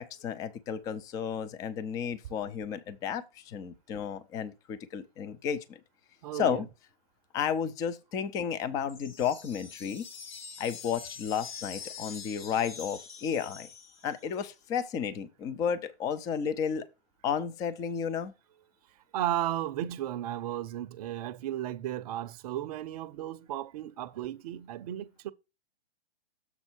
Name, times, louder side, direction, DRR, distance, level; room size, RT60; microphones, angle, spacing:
voice 1, 0.0-5.8 6.3-6.7 7.3-10.1 10.6-13.7 14.0-16.9 17.2-18.3, left 7 dB, 10° left, 0.4 m, -32 dB
voice 2, 6.2-6.6 19.1-25.3, right 12 dB, 40° right, 0.6 m, -34 dB
sound 1, 8.9-14.4, left 6 dB, 50° left, 1.8 m, -45 dB
7.1 x 5.4 x 4.4 m
hypercardioid pair, 135°, 30 cm